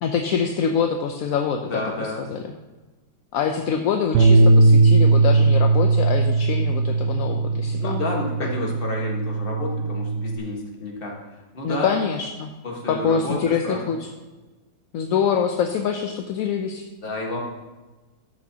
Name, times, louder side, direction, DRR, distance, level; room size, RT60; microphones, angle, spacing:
voice 1, 0.0-2.4 3.3-8.0 8.4-8.7 11.6-12.5 12.9-14.1 14.9-16.8, left 7 dB, 70° left, 4 dB, 0.9 m, -25 dB
voice 2, 1.6-2.2 7.6-11.2 11.5-12.0 12.6-14.0 17.0-17.4, left 2 dB, 35° left, -1 dB, 1.6 m, -30 dB
Bass guitar, 4.1-10.4, right 3 dB, 70° right, 0.7 m, -18 dB
13.5 x 6.2 x 2.8 m, 1.2 s
omnidirectional pair, 1.8 m